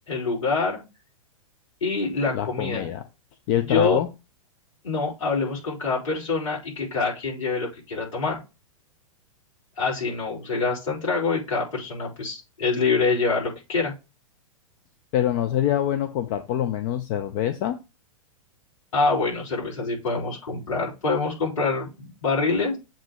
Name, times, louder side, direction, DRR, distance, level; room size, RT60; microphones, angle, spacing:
voice 1, 0.1-0.8 1.8-2.9 3.7-4.0 4.8-8.4 9.8-13.9 18.9-22.8, left 4 dB, 60° left, -4 dB, 4.3 m, -25 dB
voice 2, 2.3-3.0 3.5-4.1 15.1-17.8 20.1-20.2, left 11 dB, 35° left, 8 dB, 0.5 m, -25 dB
7.3 x 2.9 x 5.1 m, 0.27 s
figure-of-eight pair, 105°, 18 cm